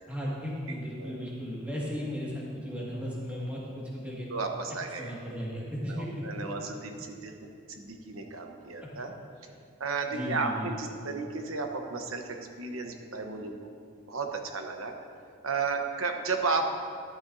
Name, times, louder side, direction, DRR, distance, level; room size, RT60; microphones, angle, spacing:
voice 1, 0.1-4.3 5.0-6.2 10.1-10.7, equal, 5° right, -6 dB, 2.0 m, -35 dB
voice 2, 4.3-5.1 5.9-7.3 7.7-9.1 9.8-13.6 14.1-14.9 15.4-16.6, right 4 dB, 80° right, 4 dB, 1.1 m, -33 dB
13.0 x 12.0 x 2.8 m, 2.3 s
head